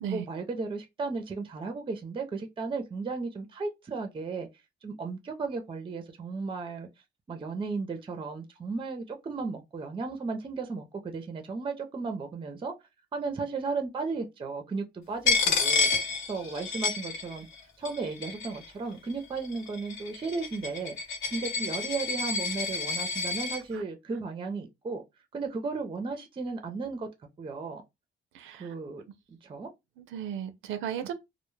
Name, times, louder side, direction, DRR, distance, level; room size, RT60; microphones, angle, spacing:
voice 1, 0.1-4.5 4.8-6.9 7.3-12.7 13.1-15.9 16.3-17.5 17.8-20.9 21.3-25.0 25.3-27.1 27.4-27.8 28.6-29.0 29.3-29.7, right 4 dB, 25° right, 0.5 m, -35 dB
Coin (dropping), 15.3-17.6 17.9-18.7 19.4-23.6, left 4 dB, 75° left, 0.9 m, -29 dB
voice 2, 28.3-28.7 30.0-31.1, right 9 dB, 80° right, 0.4 m, -35 dB
2.1 x 2.1 x 3.1 m
cardioid pair, 90°, 20 cm